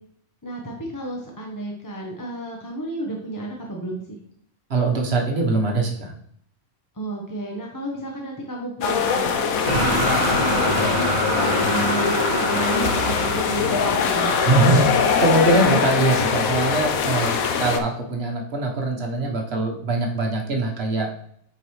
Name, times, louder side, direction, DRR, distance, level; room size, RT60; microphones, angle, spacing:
voice 1, 0.4-4.0 6.9-14.4, right 1 dB, 15° left, -1 dB, 0.9 m, -32 dB
voice 2, 4.7-6.1 14.4-17.3 17.6-21.1, right 2 dB, 50° right, 1 dB, 1.4 m, -22 dB
sound 1, 8.8-17.8, left 6 dB, 85° left, 1.2 m, -22 dB
sound 2, 9.7-15.7, right 2 dB, 75° right, 1.7 m, -27 dB
8.8 x 4.6 x 3.2 m, 0.66 s
omnidirectional pair, 1.4 m